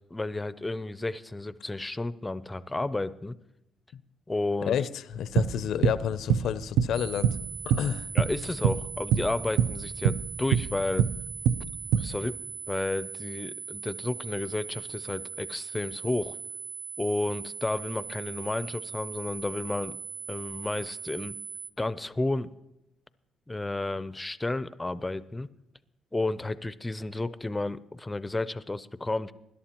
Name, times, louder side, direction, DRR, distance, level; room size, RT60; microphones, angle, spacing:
voice 1, 0.1-3.4 4.3-4.8 8.1-11.1 12.0-12.4 12.7-16.4 17.0-20.0 20.3-21.4 21.8-22.5 23.5-25.5 26.1-29.3, left 2 dB, 15° left, 16 dB, 0.4 m, -32 dB
voice 2, 4.7-7.4 7.6-8.1, left 9 dB, 75° left, 16 dB, 0.4 m, -30 dB
sound 1, 5.1-8.3 8.6-8.9 9.1-12.1, right 8 dB, 85° right, 0.5 m, -24 dB
sound 2, 6.9-21.7, right 6 dB, 60° right, 1.5 m, -40 dB
20.0 x 11.5 x 2.9 m, 0.87 s
cardioid pair, 90°, 0 cm